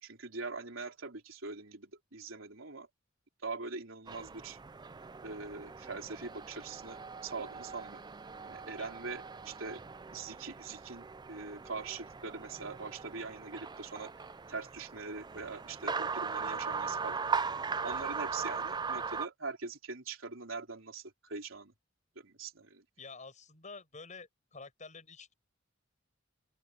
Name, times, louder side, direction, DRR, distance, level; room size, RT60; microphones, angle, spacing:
voice 1, 0.0-2.9 3.4-4.6 5.2-8.0 8.4-9.8 10.1-17.2 17.8-21.7 22.2-22.8, right 4 dB, 80° right, 3.8 m, -43 dB
sound 1, 4.1-19.3, right 5 dB, 20° right, 0.4 m, -39 dB
voice 2, 23.0-25.3, left 4 dB, 40° left, 6.5 m, -49 dB
open air
head